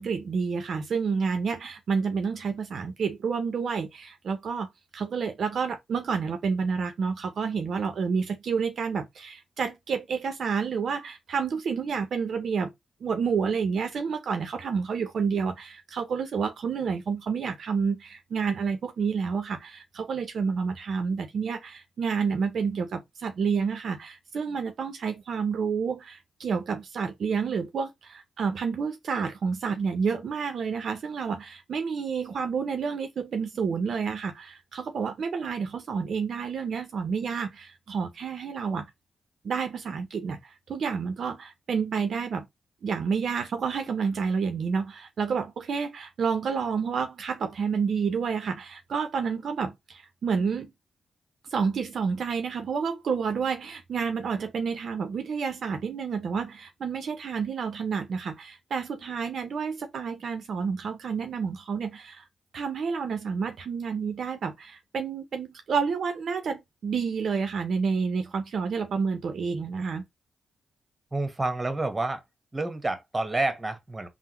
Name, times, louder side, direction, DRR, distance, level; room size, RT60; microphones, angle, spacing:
voice 1, 0.0-4.7 4.9-12.7 13.0-38.8 39.4-42.4 42.8-50.7 51.5-62.2 62.5-70.0, right 5 dB, 70° right, 0.5 m, -29 dB
voice 2, 71.1-72.2 72.5-74.1, right 2 dB, 25° right, 1.0 m, -29 dB
3.6 x 2.0 x 2.9 m
supercardioid pair, 50°, 0 cm